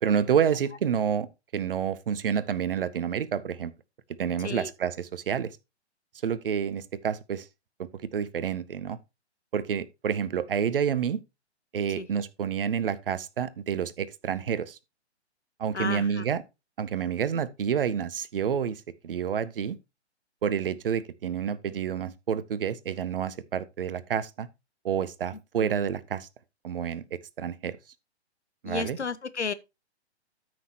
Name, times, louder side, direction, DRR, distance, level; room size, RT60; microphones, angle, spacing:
voice 1, 0.0-1.3 1.5-3.7 4.2-5.6 6.2-7.5 7.8-9.0 9.5-11.2 11.7-14.8 15.6-16.4 16.8-19.8 20.4-24.5 24.8-26.3 26.6-27.0 27.4-27.8 28.6-29.0, right 8 dB, 55° right, 0.9 m, -29 dB
voice 2, 4.4-4.7 11.9-12.1 15.7-16.2 25.6-25.8 28.6-29.5, left 5 dB, 80° left, 1.0 m, -33 dB
13.0 x 6.1 x 2.9 m
figure-of-eight pair, 125°, 34 cm